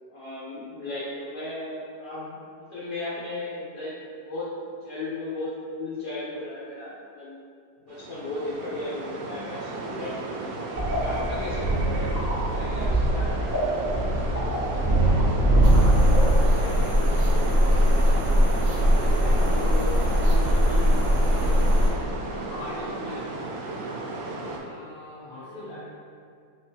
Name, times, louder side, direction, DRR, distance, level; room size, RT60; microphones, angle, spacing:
voice 1, 0.1-3.9 4.3-7.4 7.8-10.4 10.9-12.1 12.5-13.4 25.1-25.8, left 2 dB, 70° left, -10 dB, 1.3 m, -35 dB
sound 1, 7.9-24.6, right 2 dB, 85° right, 1.3 m, -35 dB
sound 2, 10.7-16.8, right 1 dB, 15° right, 0.5 m, -23 dB
voice 2, 14.2-23.7 24.2-25.9, left 2 dB, 50° left, -6 dB, 1.0 m, -40 dB
wind light desert day steady eerie with crickets, 15.6-21.9, equal, 55° right, 0.9 m, -21 dB
3.5 x 3.4 x 2.8 m, 2.3 s
omnidirectional pair, 2.0 m